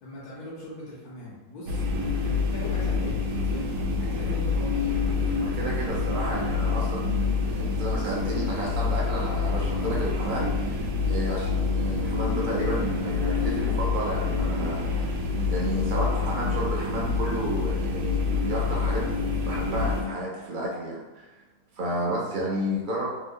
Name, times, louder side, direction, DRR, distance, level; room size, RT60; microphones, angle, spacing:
voice 1, 0.0-1.8 2.2-3.7 4.0-4.9, left 1 dB, 75° left, -7 dB, 1.2 m, -40 dB
sound 1, 1.7-20.0, left 4 dB, 85° right, 1.2 m, -27 dB
voice 2, 5.4-14.8 15.5-19.1 19.4-21.3 21.8-23.1, right 1 dB, 55° right, -4 dB, 0.5 m, -31 dB
3.4 x 2.0 x 3.6 m, 1.1 s
omnidirectional pair, 1.7 m